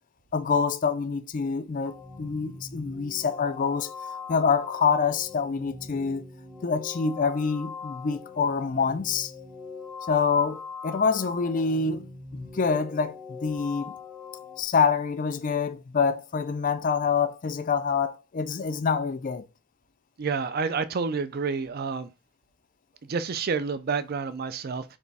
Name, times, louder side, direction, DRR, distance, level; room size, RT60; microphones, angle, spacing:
voice 1, 0.3-6.2 6.6-9.3 10.1-12.1 12.3-14.0 14.6-19.5, left 5 dB, 40° left, 0.3 m, -26 dB
sound 1, 1.8-14.6, left 5 dB, 10° right, 0.7 m, -42 dB
voice 2, 20.2-22.1 23.1-24.8, right 5 dB, 45° right, 0.4 m, -29 dB
3.4 x 3.0 x 4.1 m
head